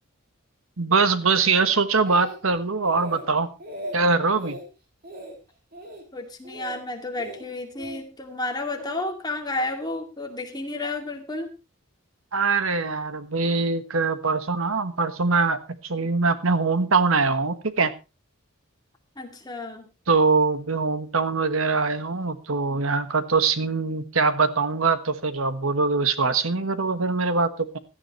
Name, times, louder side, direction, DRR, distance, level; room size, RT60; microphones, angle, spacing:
voice 1, 0.8-3.5 3.9-4.6 12.3-17.9 20.1-27.8, right 4 dB, 65° right, 11 dB, 1.3 m, -23 dB
Speech, 1.6-2.6 2.8-3.3 3.6-4.0 4.4-4.6 5.0-5.4 5.7-6.0 6.4-6.8 7.2-8.0 8.8-9.0, right 1 dB, 45° right, 3.4 m, -38 dB
voice 2, 6.1-11.5 19.2-19.9, left 2 dB, 20° left, 3 dB, 2.4 m, -31 dB
17.0 x 12.5 x 3.1 m, 0.28 s
head